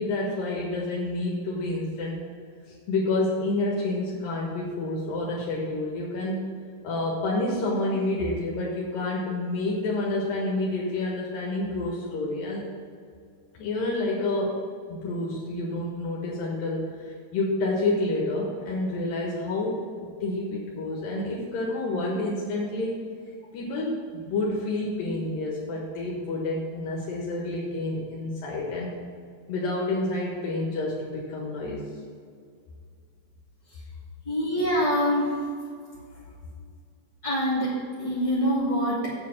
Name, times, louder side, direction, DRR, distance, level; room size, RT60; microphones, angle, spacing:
voice 1, 0.0-2.2 2.7-6.4 6.8-12.7 13.5-14.6 14.9-19.8 20.2-23.0 23.5-28.9 29.5-31.9, left 2 dB, 80° left, -3 dB, 3.1 m, -29 dB
voice 2, 34.3-35.4 37.2-39.1, equal, 10° left, -9 dB, 1.7 m, -25 dB
7.7 x 7.3 x 7.1 m, 2.2 s
omnidirectional pair, 4.0 m